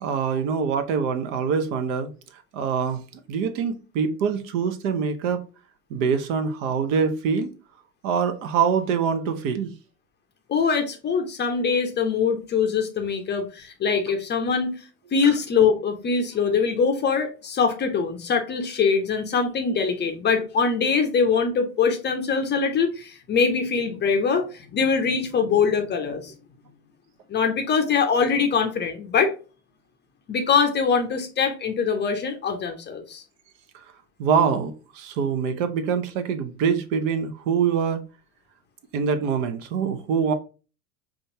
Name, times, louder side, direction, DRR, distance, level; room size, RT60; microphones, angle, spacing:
voice 1, 0.0-3.0 3.3-5.4 5.9-7.5 8.0-9.7 33.7-33.8 34.2-38.0 38.9-40.3, right 6 dB, 55° right, 0.7 m, -24 dB
voice 2, 10.5-14.8 15.1-26.3 27.3-29.3 30.3-33.2, left 5 dB, 25° left, 0.6 m, -23 dB
5.1 x 2.4 x 2.7 m
hypercardioid pair, 80°, 46 cm